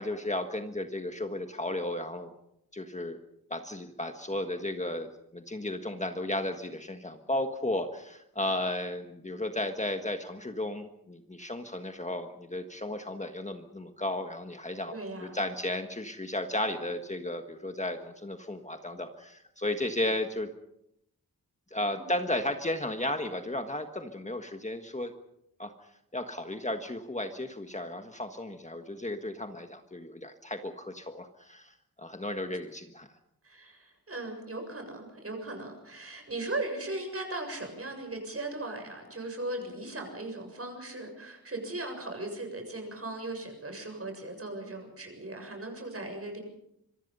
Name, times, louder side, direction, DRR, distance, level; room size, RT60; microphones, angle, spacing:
voice 1, 0.0-2.3 2.7-3.2 3.5-15.0 15.2-20.5 21.7-25.1 25.6-25.7 26.1-33.1, left 1 dB, 20° left, 6 dB, 1.5 m, -34 dB
voice 2, 14.9-15.4 21.9-22.1 33.4-46.4, right 2 dB, 40° right, 4 dB, 7.3 m, -38 dB
26.0 x 24.0 x 5.5 m, 0.78 s
wide cardioid pair, 120°, 36 cm